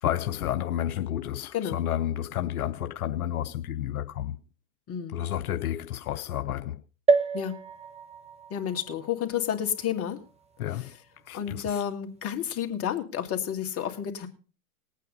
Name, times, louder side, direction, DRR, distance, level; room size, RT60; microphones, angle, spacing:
voice 1, 0.0-4.4 5.1-6.8 10.6-10.9 11.3-11.8, left 11 dB, 75° left, 0.9 m, -31 dB
voice 2, 1.5-1.8 4.9-5.2 7.3-7.5 8.5-10.2 11.3-14.3, left 9 dB, 30° left, 2.3 m, -30 dB
sound 1, 7.1-10.7 11.3-11.4 11.6-11.7, right 4 dB, 15° right, 1.3 m, -29 dB
19.0 x 9.1 x 5.4 m
hypercardioid pair, 105°, 44 cm